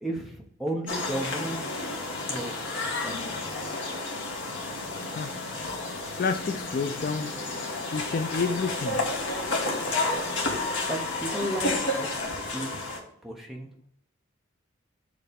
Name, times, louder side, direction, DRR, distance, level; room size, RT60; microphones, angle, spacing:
voice 1, 0.0-2.6 3.0-3.5 10.9-12.7 13.2-13.7, right 1 dB, ahead, 0 dB, 0.9 m, -34 dB
sound 1, 0.9-13.0, left 2 dB, 60° left, 1.4 m, -31 dB
voice 2, 6.2-7.3 7.9-9.0, left 4 dB, 45° left, 8 dB, 0.3 m, -29 dB
6.8 x 3.2 x 5.2 m, 0.71 s
head